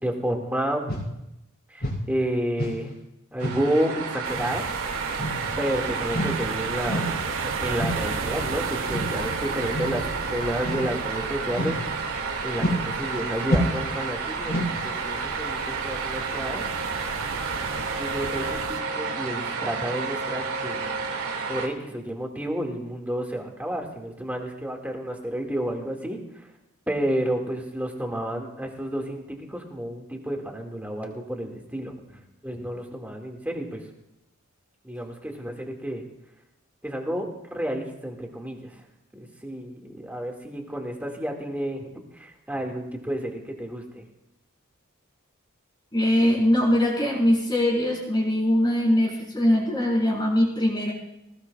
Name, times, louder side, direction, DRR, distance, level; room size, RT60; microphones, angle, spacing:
voice 1, 0.0-0.8 1.7-2.9 3.3-4.7 5.6-11.8 12.4-16.7 17.9-20.9 21.5-26.5 26.9-32.0 32.4-33.8 34.8-36.0 36.8-38.8 39.1-44.0, right 1 dB, 10° right, 1 dB, 2.2 m, -31 dB
sound 1, 0.9-1.1 1.8-2.1 2.6-2.8 3.4-3.7 4.3-4.5 5.2-5.5 6.1-6.4 6.9-7.2 7.8-8.1 8.9-9.2 9.7-10.0 10.6-10.9 11.5-11.9 12.6-12.9 13.5-13.9 14.5-14.8, equal, 50° left, 5.1 m, -28 dB
sound 2, 3.4-21.7, right 4 dB, 85° right, 2.3 m, -31 dB
sound 3, 4.2-18.8, right 4 dB, 60° right, 0.7 m, -36 dB
voice 2, 45.9-50.9, left 1 dB, 20° left, -4 dB, 4.7 m, -22 dB
19.5 x 19.0 x 2.5 m, 0.88 s
head